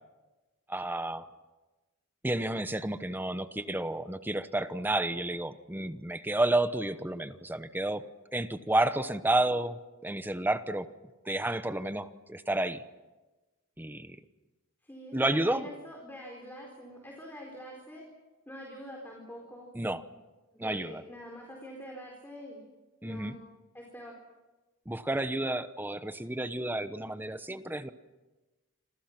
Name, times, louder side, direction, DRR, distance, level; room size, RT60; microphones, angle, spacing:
voice 1, 0.7-1.3 2.2-8.0 8.3-10.9 11.2-12.8 13.8-14.2 15.1-15.7 19.7-20.0 20.6-21.0 23.0-23.3 24.9-27.9, right 1 dB, 10° right, 11 dB, 1.0 m, -31 dB
voice 2, 14.8-18.0 18.5-19.7 20.5-22.6 23.0-23.4 23.7-24.1, equal, 10° left, 0 dB, 4.4 m, -45 dB
28.0 x 27.0 x 6.1 m, 1.1 s
head